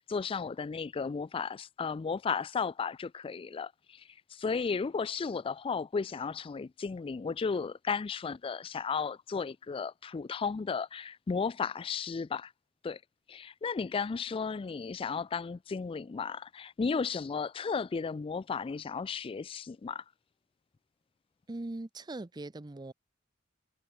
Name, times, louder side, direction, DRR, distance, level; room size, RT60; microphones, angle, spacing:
voice 1, 0.0-12.5 12.8-13.0 13.3-20.0, left 5 dB, 25° left, 0.3 m, -34 dB
voice 2, 21.5-22.9, right 2 dB, 20° right, 0.6 m, -40 dB
head